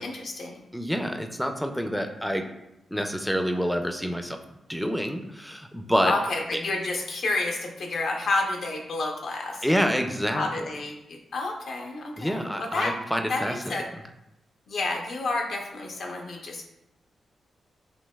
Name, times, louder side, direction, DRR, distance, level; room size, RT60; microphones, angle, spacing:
voice 1, 0.0-0.6 6.0-9.9 10.3-12.9 13.3-13.9 14.7-16.7, left 2 dB, 75° left, 2 dB, 0.7 m, -30 dB
voice 2, 0.7-2.4 2.9-4.4 4.7-6.1 9.6-10.4 12.2-13.5, equal, ahead, 5 dB, 0.3 m, -27 dB
5.2 x 2.8 x 2.2 m, 0.87 s
cardioid pair, 75°, 0 cm